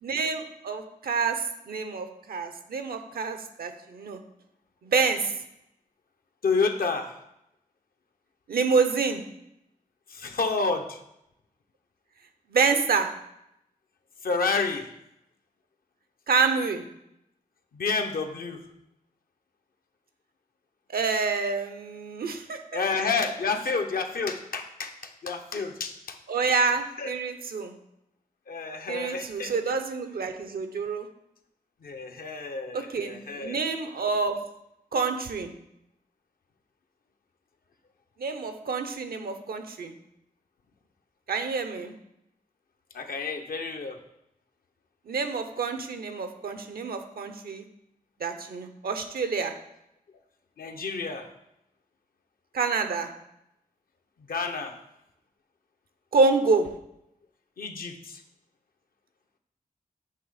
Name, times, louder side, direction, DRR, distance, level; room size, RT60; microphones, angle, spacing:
voice 1, 0.0-4.2 4.8-5.3 8.5-9.2 12.5-13.1 16.3-16.8 20.9-22.6 26.3-27.7 28.9-31.1 32.7-34.4 34.9-35.5 38.2-39.9 41.3-41.9 45.1-47.6 48.2-49.5 52.5-53.1 56.1-56.7, right 4 dB, 80° right, 8 dB, 0.6 m, -27 dB
voice 2, 6.4-7.1 10.1-11.0 14.2-14.9 17.7-18.6 22.7-26.2 27.0-27.1 28.5-29.8 31.8-33.6 42.9-44.0 50.6-51.3 54.3-54.8 57.6-58.2, left 4 dB, 75° left, 5 dB, 0.7 m, -30 dB
7.6 x 3.2 x 4.8 m, 0.82 s
cardioid pair, 50°, 15 cm